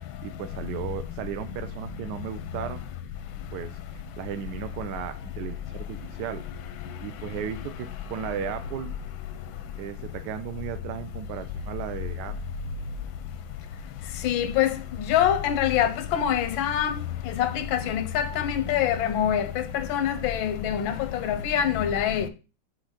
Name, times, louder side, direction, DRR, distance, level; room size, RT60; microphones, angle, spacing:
voice 1, 0.2-2.8 3.5-6.4 7.0-8.9 9.8-12.4, right 9 dB, 70° right, 1.1 m, -35 dB
voice 2, 14.2-14.7 15.1-16.9 17.4-19.6 19.9-20.9 21.2-22.3, left 10 dB, 85° left, 1.5 m, -24 dB
6.2 x 3.2 x 5.7 m
omnidirectional pair, 2.1 m